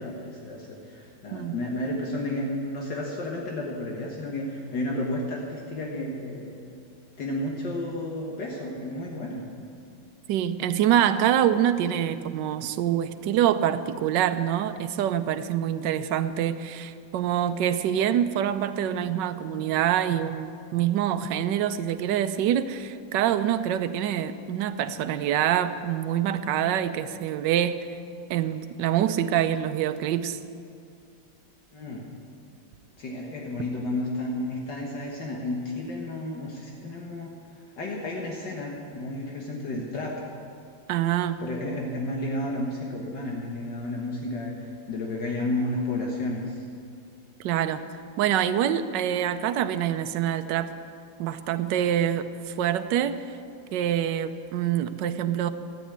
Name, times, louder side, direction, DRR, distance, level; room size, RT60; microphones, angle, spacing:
voice 1, 0.0-6.5 7.2-9.5 31.7-32.1 33.0-37.3 37.8-40.2 41.4-46.7, left 1 dB, 65° left, -2 dB, 2.0 m, -32 dB
voice 2, 10.3-27.8 28.3-30.4 40.9-41.4 47.4-47.9 48.2-50.7 51.2-53.2 53.7-55.5, right 10 dB, 75° right, 11 dB, 1.3 m, -25 dB
13.5 x 9.5 x 8.8 m, 2.4 s
omnidirectional pair, 2.1 m